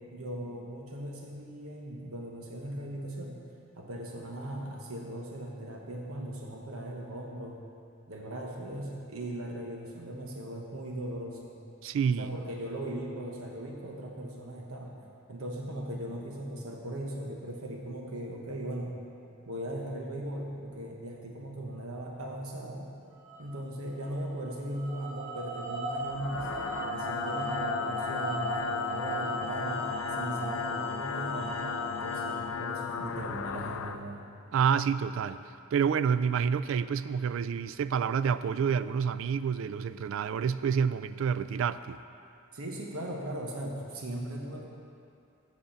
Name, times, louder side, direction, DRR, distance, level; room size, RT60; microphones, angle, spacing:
voice 1, 0.1-3.4 3.8-7.6 8.1-11.6 12.2-15.0 15.3-19.0 19.5-22.9 23.4-26.5 26.9-31.6 32.0-34.2 42.5-44.7, right 1 dB, 85° right, 0 dB, 1.0 m, -38 dB
voice 2, 11.8-12.4 34.5-35.4 35.7-42.0, right 7 dB, 65° right, 14 dB, 0.3 m, -28 dB
sound 1, 23.2-23.4 24.3-32.3, right 1 dB, 30° right, 1.4 m, -36 dB
sound 2, 26.0-34.0, left 6 dB, 70° left, 0.4 m, -35 dB
7.9 x 6.6 x 7.1 m, 2.5 s
head